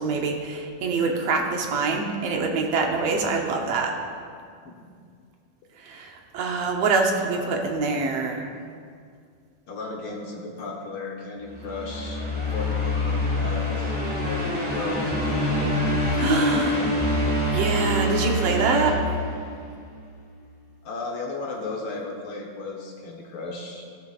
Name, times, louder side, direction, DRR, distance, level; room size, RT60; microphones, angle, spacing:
voice 1, 0.0-4.0 5.8-8.5 16.2-16.8 17.5-19.1, right 4 dB, 65° right, 2 dB, 1.8 m, -25 dB
voice 2, 9.7-12.2 12.5-13.9 14.2-16.0 16.3-16.9 20.8-23.8, left 3 dB, 75° left, -1 dB, 1.2 m, -35 dB
sound 1, 11.5-19.8, left 1 dB, 5° right, 0.9 m, -25 dB
14.0 x 12.5 x 2.4 m, 2.2 s
omnidirectional pair, 3.6 m